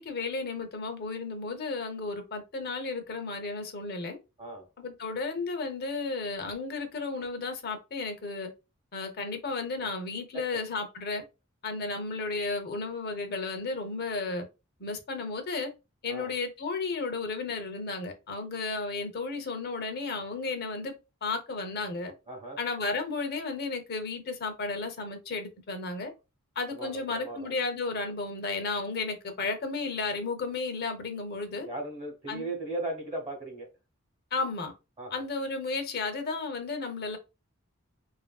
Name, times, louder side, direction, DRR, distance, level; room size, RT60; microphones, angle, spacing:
voice 1, 0.0-4.2 4.8-8.5 8.9-11.2 11.6-14.5 14.8-15.7 16.0-20.9 21.2-22.1 22.6-26.1 26.6-31.7 32.3-32.5 34.3-34.7 35.1-37.2, left 3 dB, 50° left, 0.7 m, -33 dB
voice 2, 22.3-22.6 26.7-27.5 31.6-33.7 35.0-35.2, right 2 dB, 35° right, 1.0 m, -37 dB
2.9 x 2.6 x 2.3 m
head